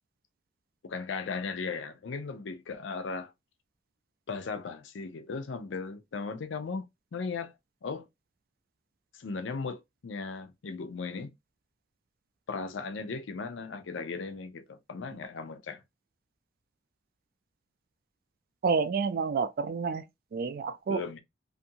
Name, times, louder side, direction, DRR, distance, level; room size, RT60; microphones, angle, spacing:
voice 1, 0.8-3.3 4.3-7.5 7.8-8.1 9.1-11.3 12.5-15.8 20.9-21.2, left 4 dB, 90° left, 0.5 m, -37 dB
voice 2, 18.6-20.0 20.3-21.0, right 5 dB, 55° right, 0.3 m, -29 dB
2.6 x 2.5 x 2.6 m
head